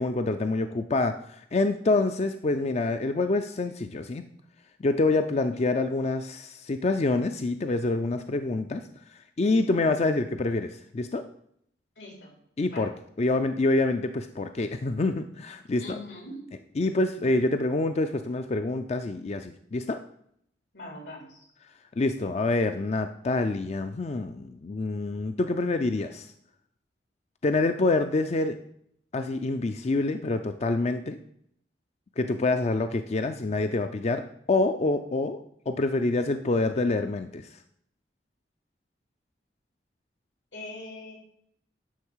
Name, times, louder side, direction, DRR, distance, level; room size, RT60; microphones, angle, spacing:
voice 1, 0.0-4.2 4.8-8.8 9.4-11.2 12.6-12.9 13.2-16.0 16.8-20.0 22.0-26.3 27.4-28.6 29.1-31.2 32.2-35.4 35.7-37.5, left 2 dB, 40° left, 8 dB, 0.5 m, -26 dB
voice 2, 12.0-12.3 12.7-12.9 15.8-16.4 20.7-21.5 40.5-41.1, left 2 dB, 90° left, -1 dB, 3.8 m, -41 dB
11.5 x 3.9 x 7.2 m, 0.70 s
head